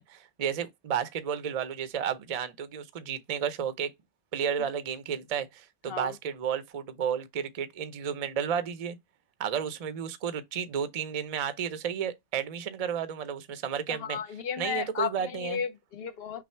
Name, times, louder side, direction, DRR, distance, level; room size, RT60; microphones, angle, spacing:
voice 1, 0.0-3.9 4.3-9.0 9.4-14.2 14.6-15.6, right 8 dB, 40° right, 0.5 m, -32 dB
voice 2, 13.9-16.4, left 7 dB, 60° left, 0.7 m, -34 dB
6.0 x 2.0 x 4.3 m
omnidirectional pair, 1.3 m